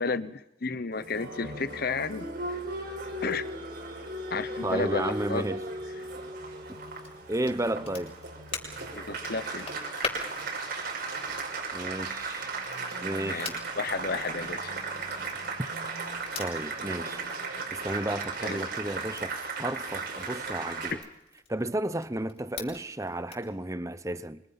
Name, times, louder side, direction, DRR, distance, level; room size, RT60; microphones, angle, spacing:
voice 1, 0.0-2.3 3.2-3.5 4.3-5.4 8.9-9.7 13.2-14.7 18.4-18.6, left 4 dB, 45° left, 0.9 m, -32 dB
Applause, 0.9-20.9, right 3 dB, 50° right, 6.2 m, -36 dB
voice 2, 4.6-5.6 7.3-8.2 11.7-12.5 13.0-13.6 16.4-17.2 17.7-19.3 19.6-21.0 21.5-24.4, right 1 dB, 15° right, 0.8 m, -32 dB
Crackle, 6.9-23.5, left 4 dB, 30° left, 7.0 m, -45 dB
26.5 x 25.5 x 5.9 m
head